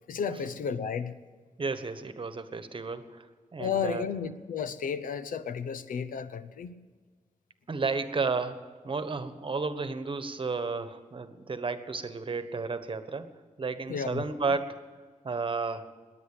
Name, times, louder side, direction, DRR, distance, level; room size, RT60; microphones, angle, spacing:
voice 1, 0.1-1.1 3.6-6.7 13.9-14.5, left 6 dB, 85° left, 13 dB, 0.8 m, -33 dB
voice 2, 1.6-3.3 3.5-4.0 7.7-8.6 8.8-13.3 13.6-14.8 15.2-15.9, right 4 dB, 40° right, 10 dB, 1.3 m, -32 dB
20.5 x 9.4 x 6.8 m, 1.5 s
wide cardioid pair, 100°, 14 cm